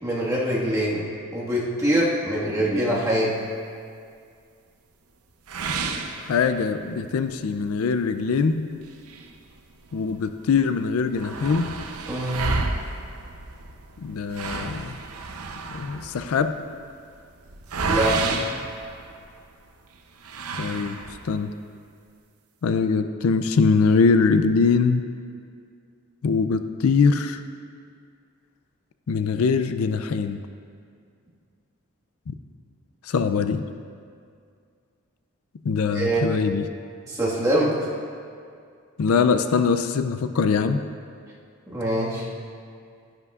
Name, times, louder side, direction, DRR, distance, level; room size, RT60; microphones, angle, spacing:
voice 1, 0.0-1.0 1.3-3.4 12.1-12.5 17.8-18.4 35.9-36.3 37.0-37.8 41.7-42.3, right 1 dB, 15° right, -6 dB, 1.6 m, -24 dB
sound 1, 5.5-6.9 7.4-7.5 7.9-8.0 8.8-10.1 10.5-10.6 10.8-19.5 20.2-21.4, right 3 dB, 85° right, 0.7 m, -31 dB
voice 2, 6.2-8.7 9.9-11.7 14.0-14.9 15.7-16.5 20.6-21.0 21.2-21.5 22.6-25.0 26.2-27.4 29.1-30.4 32.3-32.4 33.1-33.6 35.6-36.7 39.0-40.8, left 5 dB, 75° left, 10 dB, 0.4 m, -22 dB
12.0 x 11.0 x 2.4 m, 2.3 s
head